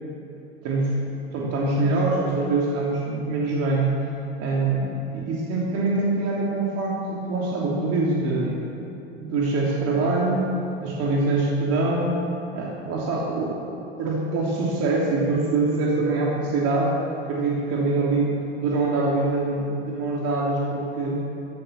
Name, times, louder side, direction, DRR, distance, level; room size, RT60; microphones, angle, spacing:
voice 1, 1.3-3.9 4.4-8.6 9.2-10.5 10.8-12.2 12.5-17.0 17.2-18.3 18.6-21.2, right 3 dB, 45° right, -4 dB, 3.0 m, -24 dB
15.5 x 11.5 x 7.4 m, 2.7 s
figure-of-eight pair, 80°, 34 cm